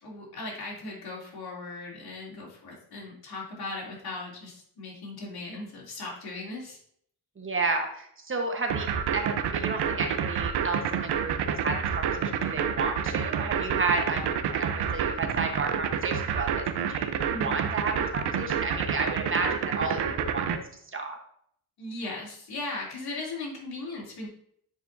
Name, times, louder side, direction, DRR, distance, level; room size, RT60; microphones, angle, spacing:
voice 1, 0.0-6.8 17.3-17.7 21.8-24.3, left 2 dB, 70° left, -3 dB, 2.8 m, -38 dB
voice 2, 7.4-8.9 9.1-20.5 20.9-21.2, right 3 dB, 30° right, 3 dB, 1.1 m, -32 dB
sound 1, 8.7-20.6, right 8 dB, 90° right, 0.7 m, -28 dB
9.6 x 4.8 x 2.6 m, 0.66 s
cardioid pair, 105°, 39 cm